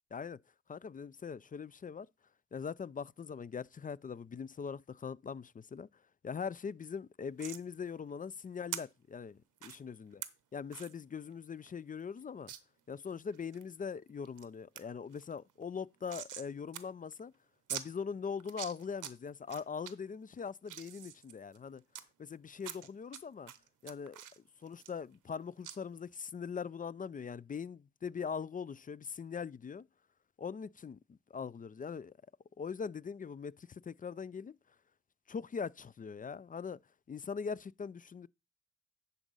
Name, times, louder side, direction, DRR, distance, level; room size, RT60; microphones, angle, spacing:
voice 1, 0.7-2.1 2.5-5.9 6.2-10.2 10.5-12.5 12.9-17.3 17.7-21.8 22.2-23.5 23.8-24.2 24.6-29.8 30.4-32.1 32.6-34.5 35.3-36.8 37.1-38.3, left 6 dB, 30° left, 0.3 m, -41 dB
sound 1, 7.4-7.6 8.7-8.8 9.6-9.8 10.2-10.3 10.7-10.9 11.3-11.4 11.7-11.8 12.5-12.6 13.1-13.6 14.1-14.5 14.8-14.9 15.1-16.5 16.7-16.8 17.1-17.2 17.7-17.9 18.4-19.1 19.5-19.9 20.4-22.0 22.6-23.2 23.5-25.4 25.6-25.8, right 10 dB, 85° right, 0.8 m, -44 dB
10.0 x 4.0 x 5.3 m
cardioid pair, 45°, 30 cm